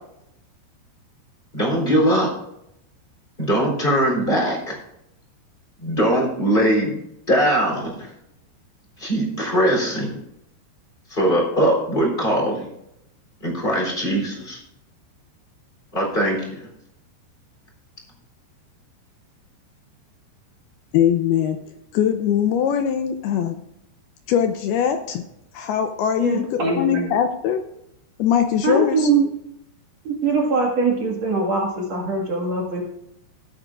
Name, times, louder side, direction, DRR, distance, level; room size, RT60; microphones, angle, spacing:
voice 1, 1.5-2.3 3.4-4.7 5.8-6.9 7.3-8.1 9.0-10.2 11.1-12.7 13.4-14.6 15.9-16.4, equal, 10° left, -1 dB, 3.5 m, -21 dB
voice 2, 20.9-21.6 21.9-23.6 24.3-25.2 25.5-26.5 26.8-27.6 28.2-29.1, left 9 dB, 80° left, 6 dB, 2.3 m, -21 dB
voice 3, 26.2-27.1 28.6-29.3 30.0-32.8, right 3 dB, 50° right, -1 dB, 2.2 m, -22 dB
18.0 x 8.7 x 2.5 m, 0.80 s
omnidirectional pair, 5.2 m